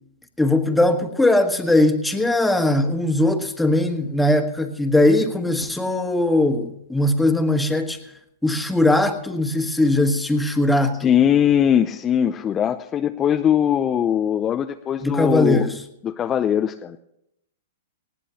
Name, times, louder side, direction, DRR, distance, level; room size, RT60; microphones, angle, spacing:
voice 1, 0.4-8.0 8.4-11.1 15.0-15.8, left 1 dB, 5° left, 4 dB, 1.5 m, -20 dB
voice 2, 11.0-15.7 16.0-17.0, left 9 dB, 25° left, 7 dB, 0.6 m, -20 dB
19.5 x 16.5 x 2.9 m, 0.79 s
hypercardioid pair, 120°, 0 cm